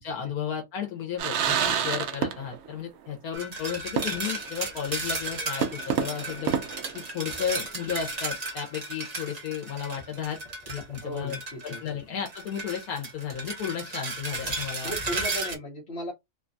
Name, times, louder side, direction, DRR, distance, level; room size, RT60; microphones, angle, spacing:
voice 1, 0.0-6.5 7.1-10.4 10.7-14.9, left 8 dB, 75° left, 1.2 m, -33 dB
sound 1, 1.2-2.8 3.1-3.2 4.0-4.5 4.8-4.9 5.6-7.6, right 8 dB, 65° right, 0.6 m, -29 dB
sound 2, 3.3-11.9 12.3-15.5, right 2 dB, 30° right, 0.8 m, -34 dB
voice 2, 11.0-11.8 14.8-16.1, equal, 45° left, 1.0 m, -36 dB
3.1 x 2.3 x 2.5 m
omnidirectional pair, 1.6 m